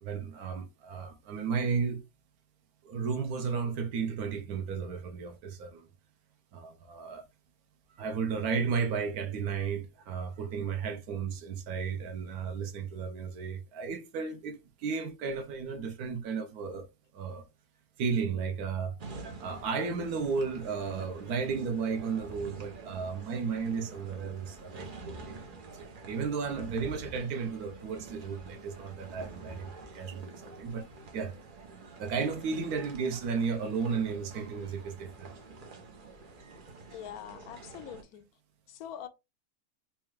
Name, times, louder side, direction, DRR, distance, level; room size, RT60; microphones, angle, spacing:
voice 1, 0.0-2.0 2.8-5.9 6.5-7.2 8.0-16.9 17.1-17.4 18.0-19.0 19.4-25.4 25.7-30.9 31.1-31.3 32.0-35.3, right 5 dB, 85° right, 1.2 m, -34 dB
sound 1, 19.0-38.0, right 3 dB, 45° right, 0.7 m, -47 dB
voice 2, 36.9-38.2 38.7-39.1, left 10 dB, 80° left, 1.1 m, -43 dB
4.3 x 2.3 x 3.1 m
omnidirectional pair, 1.6 m